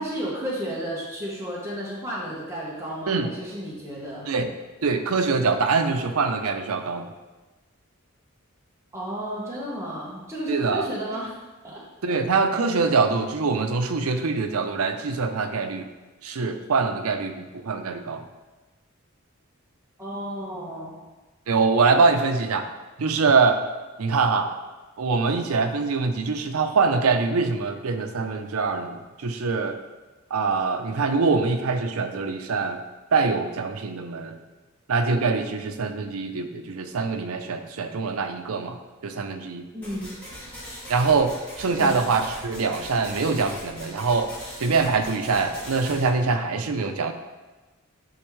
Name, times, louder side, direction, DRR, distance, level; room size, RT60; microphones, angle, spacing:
voice 1, 0.0-4.3 8.9-11.3 11.6-11.8 20.0-21.0 39.7-40.1 41.8-42.0, equal, 15° right, -6 dB, 1.1 m, -32 dB
voice 2, 4.8-7.1 10.5-10.9 12.0-15.9 16.2-18.2 21.5-22.7 23.0-23.6 24.0-24.5 25.0-29.8 30.3-32.8 33.1-34.4 34.9-39.7 40.9-44.3 44.6-47.1, right 4 dB, 85° right, 7 dB, 0.5 m, -24 dB
sound 1, 39.8-46.1, equal, 5° left, 2.0 m, -40 dB
10.0 x 3.5 x 3.1 m, 1.2 s
head